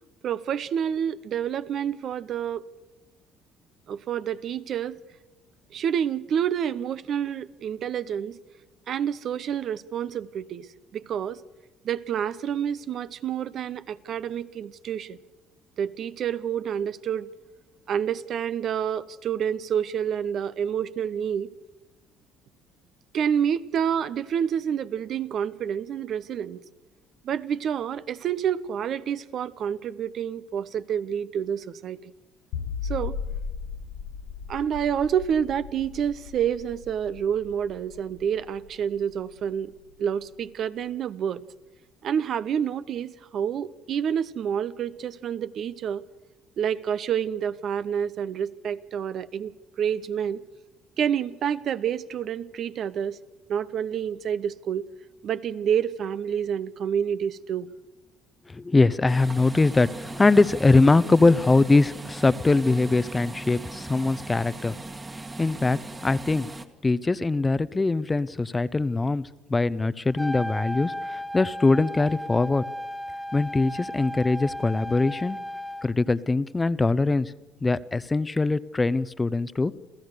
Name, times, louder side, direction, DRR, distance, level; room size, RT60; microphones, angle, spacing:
voice 1, 0.2-2.6 3.9-5.0 5.7-8.4 8.9-10.7 10.9-11.4 11.8-15.2 15.8-17.3 17.9-21.5 23.1-26.6 27.2-32.1 32.8-33.2 34.5-39.7 40.0-41.4 42.0-46.0 46.6-50.4 51.0-53.2 53.5-54.9 55.2-57.7, right 8 dB, 60° right, 14 dB, 0.8 m, -28 dB
sound 1, 32.5-39.7, left 6 dB, 75° left, 1.1 m, -37 dB
voice 2, 58.5-64.7 65.4-66.5 66.8-72.6 73.3-75.4 75.8-77.3 77.6-79.7, left 3 dB, 20° left, 17 dB, 0.7 m, -22 dB
sound 2, 59.1-66.7, right 2 dB, 25° right, 1.7 m, -39 dB
Trumpet, 70.1-75.9, equal, ahead, 1.7 m, -35 dB
28.0 x 15.0 x 6.7 m, 1.0 s
supercardioid pair, 75°, 0 cm